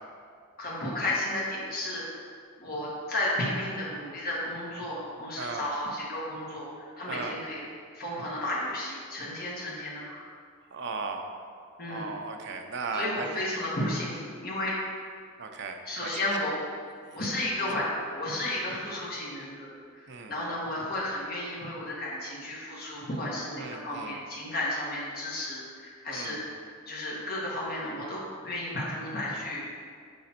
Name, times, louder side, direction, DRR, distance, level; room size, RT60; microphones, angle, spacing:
voice 1, 0.6-2.0 2.6-6.7 7.0-7.6 7.9-10.2 11.8-12.1 12.9-14.7 15.8-16.6 17.1-26.4 26.9-29.6, left 1 dB, 40° left, -6 dB, 1.4 m, -33 dB
voice 2, 5.4-5.7 7.1-7.4 10.7-11.3 11.9-13.3 15.4-16.3 17.0-17.2 17.7-17.8 20.1-20.3 23.6-24.2 26.1-26.4, right 4 dB, 50° right, 4 dB, 0.6 m, -36 dB
6.7 x 5.1 x 4.3 m, 2.2 s
head